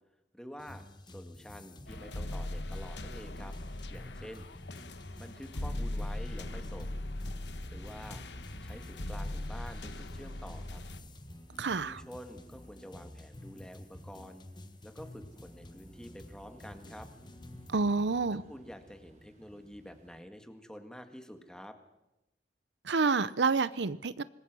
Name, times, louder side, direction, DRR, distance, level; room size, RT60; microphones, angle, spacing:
voice 1, 0.3-3.6 3.9-4.5 5.2-7.0 7.7-8.3 8.6-10.8 11.8-14.5 14.8-17.1 18.3-21.8, equal, 5° left, 1.9 m, -48 dB
sound 1, 0.6-17.8, left 1 dB, 25° left, 1.3 m, -51 dB
sound 2, 1.9-11.0, left 1 dB, 75° left, 1.3 m, -39 dB
sound 3, 3.2-20.2, equal, 45° right, 3.9 m, -58 dB
voice 2, 11.6-12.0 17.7-18.4 22.8-24.2, right 4 dB, 80° right, 0.7 m, -28 dB
26.0 x 21.0 x 6.2 m
head